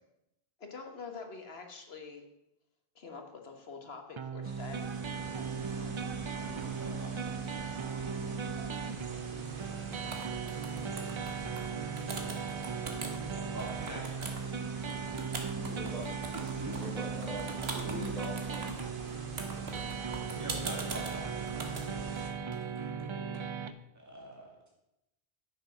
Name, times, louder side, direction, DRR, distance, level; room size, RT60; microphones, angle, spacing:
voice 1, 0.6-2.2 3.0-5.3 5.6-6.1, left 4 dB, 75° left, 4 dB, 1.7 m, -46 dB
sound 1, 4.2-23.7, right 6 dB, 40° right, 0.5 m, -38 dB
sound 2, 4.4-22.3, right 3 dB, 55° right, 1.4 m, -45 dB
voice 2, 6.4-8.4 13.5-14.5 16.4-16.9 17.9-18.0 20.4-21.4 22.7-22.9 23.9-24.5, right 1 dB, 15° right, -2 dB, 2.4 m, -45 dB
sound 3, 9.4-9.7 9.9-11.6 12.0-13.2 13.6-23.4, right 3 dB, 80° right, 1.7 m, -42 dB
voice 3, 15.5-16.1 16.8-18.7, equal, ahead, -6 dB, 4.2 m, -43 dB
9.5 x 7.3 x 6.0 m, 0.89 s
omnidirectional pair, 1.0 m